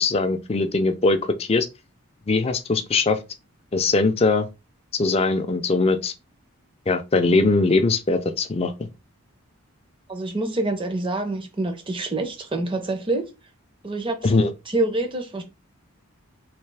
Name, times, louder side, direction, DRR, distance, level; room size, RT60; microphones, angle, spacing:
voice 1, 0.0-1.7 2.3-3.2 3.7-4.5 4.9-6.1 6.9-8.7 14.2-14.5, left 3 dB, 25° left, 0.3 m, -21 dB
voice 2, 10.1-13.3 13.8-14.4 14.7-15.4, right 2 dB, 20° right, 0.5 m, -26 dB
3.2 x 2.7 x 3.2 m
head